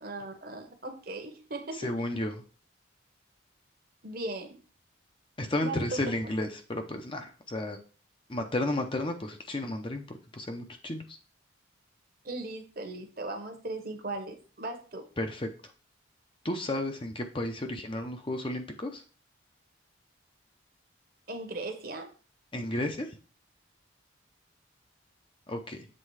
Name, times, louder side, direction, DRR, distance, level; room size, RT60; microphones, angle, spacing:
voice 1, 0.0-1.9 4.0-4.6 5.6-6.0 12.2-15.1 21.3-22.1 22.7-22.8, right 2 dB, 45° right, 6 dB, 1.1 m, -38 dB
voice 2, 1.8-2.4 5.4-7.8 8.3-10.0 10.3-11.0 15.2-15.5 16.4-19.0 22.5-23.1 25.5-25.9, left 1 dB, 25° left, 5 dB, 0.7 m, -32 dB
7.6 x 3.7 x 4.8 m, 0.37 s
head